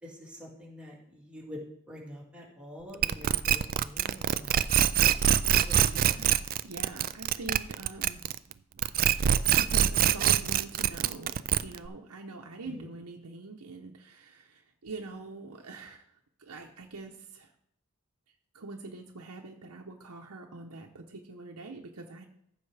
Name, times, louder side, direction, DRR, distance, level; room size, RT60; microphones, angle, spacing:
voice 1, 0.0-1.6 1.9-4.6 5.7-6.2 12.6-12.9, left 1 dB, 5° right, -4 dB, 2.4 m, -46 dB
sound 1, 3.0-8.5 8.8-11.9, right 10 dB, 40° right, 0.3 m, -24 dB
voice 2, 5.9-8.2 9.5-16.1 16.4-17.5 18.5-22.2, right 3 dB, 85° right, 1 dB, 0.9 m, -44 dB
14.0 x 6.4 x 3.4 m, 0.74 s
head